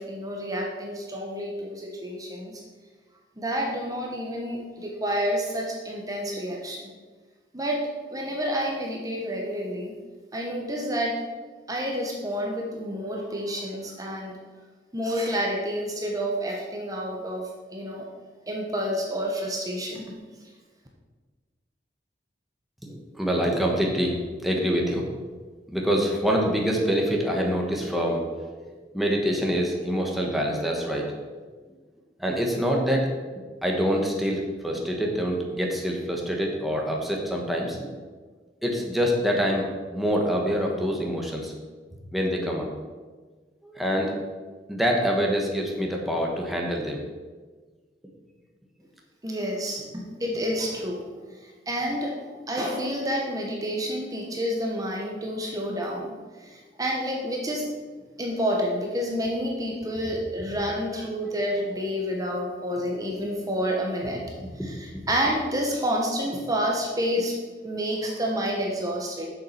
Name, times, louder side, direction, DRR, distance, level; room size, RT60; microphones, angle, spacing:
voice 1, 0.0-2.6 3.4-6.9 7.5-7.8 8.1-9.9 10.3-11.2 11.7-14.3 14.9-18.1 18.5-20.0 49.2-51.0 51.7-52.1 52.5-56.1 56.4-57.7 58.2-64.2 64.6-67.4 67.6-69.3, equal, 20° right, -1 dB, 1.1 m, -29 dB
voice 2, 22.8-25.1 25.7-28.2 28.6-31.1 32.2-33.1 33.6-37.8 38.6-39.6 39.9-41.5 42.1-42.7 43.6-44.2 44.7-47.0 64.4-64.7, equal, ahead, -1 dB, 1.3 m, -25 dB
7.4 x 6.7 x 5.8 m, 1.4 s
head